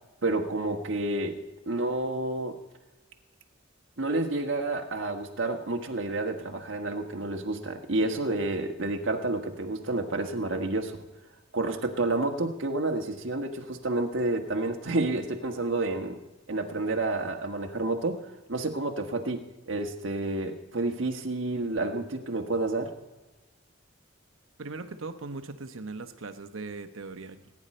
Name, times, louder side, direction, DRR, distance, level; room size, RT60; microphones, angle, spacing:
voice 1, 0.2-1.4 1.7-2.6 4.0-11.0 11.5-16.2 16.5-22.9, right 2 dB, 70° right, 4 dB, 1.4 m, -30 dB
voice 2, 24.6-27.5, right 3 dB, 85° right, 9 dB, 1.0 m, -39 dB
20.0 x 9.7 x 4.4 m, 1.1 s
head